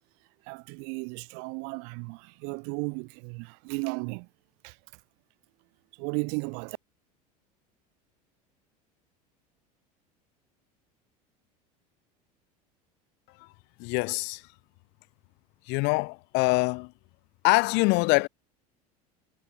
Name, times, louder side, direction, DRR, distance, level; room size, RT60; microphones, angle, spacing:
voice 1, 0.4-4.3 4.6-4.8 5.9-6.8, right 40 dB or more, 65° right, 3.0 m, -35 dB
voice 2, 13.8-14.4 15.7-16.9 17.4-18.3, left 28 dB, 60° left, 1.3 m, -24 dB
hypercardioid pair, 80°, 21 cm